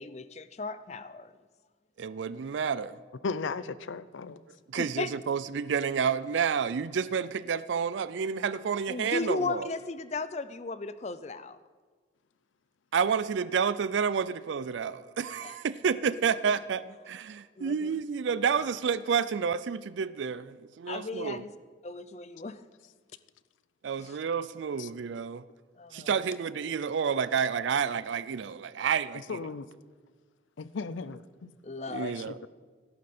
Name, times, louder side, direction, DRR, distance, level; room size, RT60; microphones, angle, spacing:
voice 1, 0.0-1.3 4.7-5.1 8.9-11.6 15.4-15.6 17.6-17.9 18.6-18.7 20.9-21.5 21.8-22.6 24.0-24.2 25.8-26.1 31.6-32.1, left 3 dB, 35° left, 0.5 m, -36 dB
voice 2, 2.0-3.0 4.5-9.7 12.9-21.4 23.8-25.4 25.9-29.4 31.9-32.4, right 6 dB, 75° right, 0.4 m, -30 dB
voice 3, 3.2-4.4 24.8-24.9 29.3-29.7 30.6-31.5 32.0-32.5, left 4 dB, 85° left, 0.5 m, -36 dB
14.5 x 11.5 x 4.3 m
head